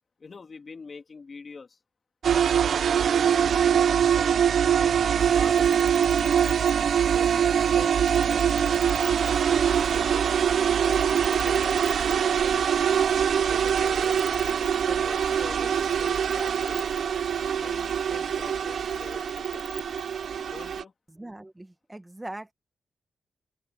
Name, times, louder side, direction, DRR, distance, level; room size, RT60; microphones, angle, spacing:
voice 1, 0.2-1.8 3.2-5.9 7.1-12.7 13.2-16.9 17.6-19.7 20.5-20.9, left 4 dB, 40° left, 2.8 m, -44 dB
sound 1, 2.2-20.8, right 8 dB, 75° right, 0.8 m, -23 dB
Cricket, 5.2-20.8, left 1 dB, 5° left, 2.7 m, -47 dB
voice 2, 21.1-22.5, right 1 dB, 10° right, 1.4 m, -41 dB
open air
wide cardioid pair, 150°, 0 cm